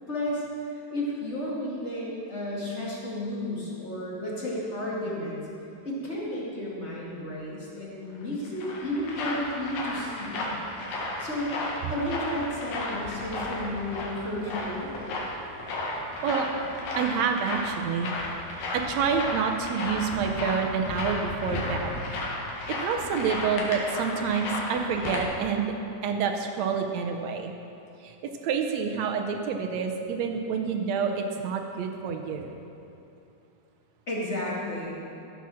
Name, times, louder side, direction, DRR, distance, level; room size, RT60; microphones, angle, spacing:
voice 1, 0.1-0.4 0.9-5.4 5.8-10.6 11.2-11.5 11.9-14.9 34.1-35.0, left 1 dB, 25° left, -5 dB, 1.8 m, -32 dB
sound 1, 8.2-25.2, left 2 dB, 80° left, 3.2 m, -33 dB
voice 2, 16.9-18.1 18.7-21.9 22.7-25.6 26.0-27.5 28.0-32.5, right 6 dB, 75° right, 4 dB, 1.7 m, -28 dB
14.0 x 7.1 x 6.2 m, 2.7 s
omnidirectional pair, 3.7 m